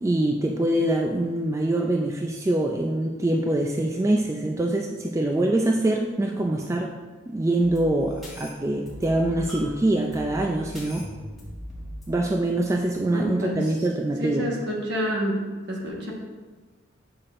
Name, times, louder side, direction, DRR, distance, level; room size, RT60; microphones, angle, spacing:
voice 1, 0.0-6.9 7.3-11.0 12.1-14.5, right 1 dB, 15° right, 1 dB, 0.3 m, -24 dB
sound 1, 7.6-13.3, equal, ahead, 1.8 m, -41 dB
voice 2, 13.1-13.7 14.2-16.1, equal, 60° right, -2 dB, 1.4 m, -28 dB
8.1 x 5.7 x 2.5 m, 1.3 s
head